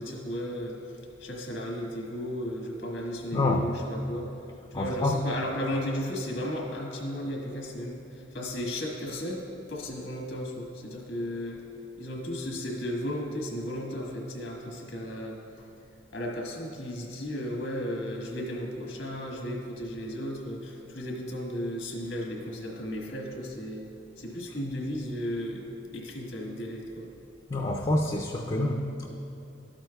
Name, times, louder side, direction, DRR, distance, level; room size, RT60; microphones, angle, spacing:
voice 1, 0.0-4.3 4.7-11.6 12.0-15.7 16.1-23.9 24.2-25.7 25.9-27.1, equal, 85° left, -1 dB, 1.4 m, -35 dB
voice 2, 3.3-3.7 4.7-5.4 27.5-29.1, left 2 dB, 30° left, 1 dB, 0.4 m, -27 dB
12.5 x 8.9 x 2.3 m, 2.8 s
head